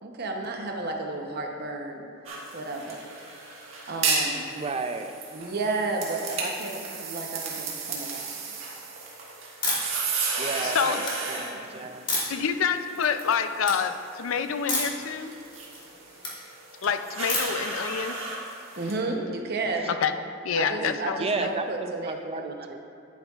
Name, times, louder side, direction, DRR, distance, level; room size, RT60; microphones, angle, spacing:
voice 1, 0.0-2.1 2.5-3.0 3.9-4.5 5.3-8.3 10.6-10.7 11.3-11.9 18.8-19.9 20.5-22.5, right 2 dB, 55° right, 2 dB, 0.9 m, -32 dB
sound 1, 2.3-19.0, right 4 dB, 80° right, 1.7 m, -34 dB
voice 2, 4.5-5.1 10.4-12.0 20.8-22.8, right 3 dB, 30° right, 6 dB, 0.4 m, -33 dB
sound 2, 9.6-10.0 10.5-11.1 12.1-12.5 13.0-13.3 13.6-13.8 14.7-15.0 15.4-16.3 17.3-17.7, left 2 dB, 25° left, 1.9 m, -29 dB
voice 3, 10.6-11.0 12.3-15.3 16.8-18.2 19.9-20.1 20.4-21.5, left 6 dB, 80° left, 9 dB, 0.4 m, -27 dB
10.0 x 9.1 x 2.4 m, 2.4 s
head